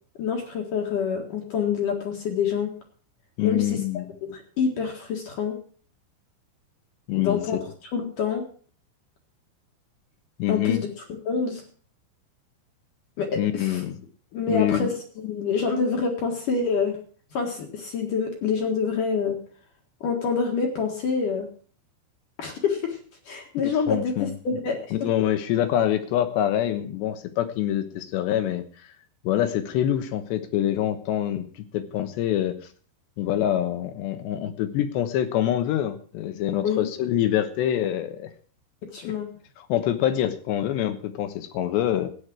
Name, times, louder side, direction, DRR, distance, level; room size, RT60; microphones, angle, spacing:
voice 1, 0.2-2.7 3.4-5.6 7.2-8.5 10.5-11.6 13.2-13.8 14.3-17.0 17.3-19.4 20.0-21.5 22.4-23.0 23.3-24.9 36.6-36.9 38.8-39.3, left 5 dB, 55° left, 2 dB, 2.8 m, -27 dB
voice 2, 3.4-4.1 7.1-7.6 10.4-10.8 13.4-14.0 14.5-14.9 23.9-24.3 24.9-28.6 29.2-32.6 33.2-38.3 39.0-39.1 39.6-42.1, left 11 dB, 75° left, 9 dB, 3.2 m, -25 dB
13.5 x 9.5 x 6.1 m, 0.44 s
omnidirectional pair, 5.3 m